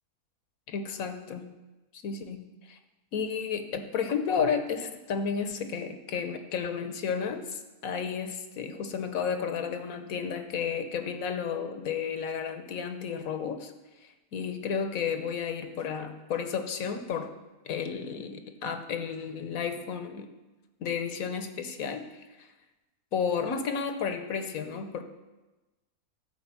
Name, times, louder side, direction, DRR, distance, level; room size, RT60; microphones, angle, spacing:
voice 1, 0.7-1.5 1.9-2.8 3.1-13.7 14.3-17.3 17.6-20.3 20.8-22.5 23.1-25.0, left 6 dB, 75° left, 7 dB, 1.2 m, -32 dB
11.5 x 5.1 x 7.3 m, 1.1 s
omnidirectional pair, 1.5 m